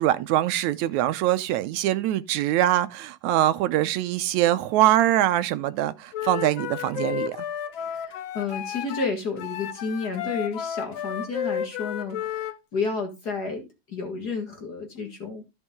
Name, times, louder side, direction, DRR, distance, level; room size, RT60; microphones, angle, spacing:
voice 1, 0.0-7.4, right 13 dB, 80° right, 2.0 m, -23 dB
Wind instrument woodwind instrument, 6.1-9.1 9.4-12.6, left 9 dB, 75° left, 1.1 m, -32 dB
voice 2, 7.8-15.4, left 4 dB, 40° left, 1.9 m, -31 dB
13.5 x 5.4 x 3.6 m
omnidirectional pair, 3.3 m